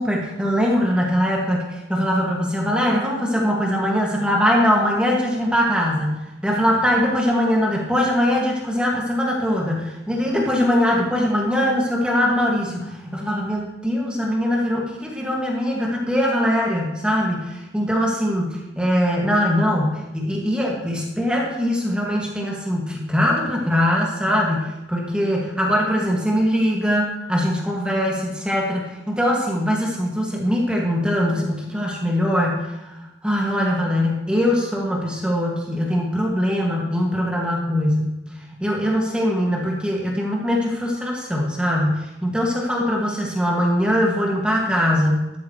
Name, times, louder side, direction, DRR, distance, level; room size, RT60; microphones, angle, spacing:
voice 1, 0.0-45.3, equal, 5° right, -2 dB, 1.9 m, -22 dB
13.0 x 12.5 x 3.1 m, 0.98 s
head